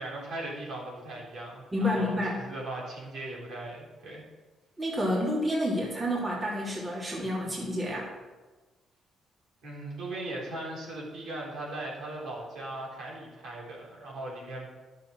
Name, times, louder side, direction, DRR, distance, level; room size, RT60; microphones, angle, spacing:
voice 1, 0.0-4.2 9.6-14.7, right 2 dB, 70° right, -4 dB, 3.8 m, -38 dB
voice 2, 1.7-2.4 4.8-8.1, left 1 dB, 25° right, -4 dB, 3.0 m, -29 dB
10.0 x 6.9 x 6.0 m, 1.2 s
cardioid pair, 90°, 0 cm